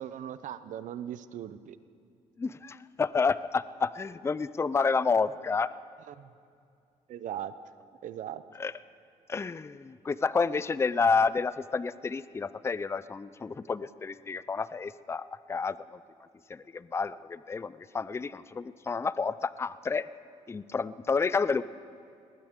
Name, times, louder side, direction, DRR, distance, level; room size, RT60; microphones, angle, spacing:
voice 1, 0.0-1.8 6.1-6.3 7.1-7.5 8.0-8.4, right 10 dB, 65° right, 14 dB, 0.7 m, -39 dB
voice 2, 2.4-5.7 8.6-8.7 9.3-15.8 16.5-20.1 20.5-21.6, left 4 dB, 20° left, 17 dB, 0.4 m, -29 dB
20.0 x 19.0 x 3.7 m, 2.4 s
cardioid pair, 85°, 14 cm